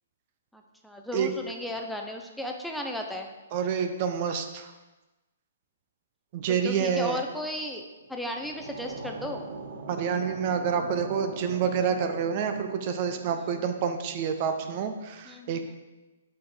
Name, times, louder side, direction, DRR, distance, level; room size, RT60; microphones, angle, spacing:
voice 1, 0.5-3.3 6.5-7.8 8.1-9.4 15.3-15.7, left 1 dB, ahead, 2 dB, 0.6 m, -35 dB
voice 2, 3.5-4.7 6.3-7.2 9.9-15.7, right 7 dB, 45° right, 7 dB, 0.5 m, -28 dB
sound 1, 7.9-15.1, right 4 dB, 70° right, 1.3 m, -42 dB
5.6 x 4.3 x 4.9 m, 1.1 s
hypercardioid pair, 135°, 0 cm